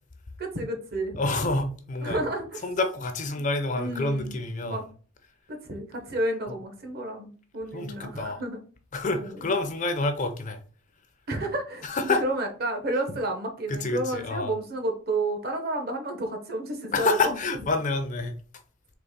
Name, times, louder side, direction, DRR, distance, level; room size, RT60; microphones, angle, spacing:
voice 1, 0.4-1.2 2.0-2.7 3.3-3.4 3.7-4.4 4.6-4.8 5.5-8.6 9.2-9.6 11.3-17.4, right 1 dB, 50° right, 0.9 m, -31 dB
voice 2, 1.2-2.2 2.6-4.8 7.7-8.4 8.9-10.6 11.8-12.2 13.7-14.5 16.9-18.4, left 3 dB, 35° left, 0.5 m, -28 dB
4.0 x 3.0 x 3.5 m
head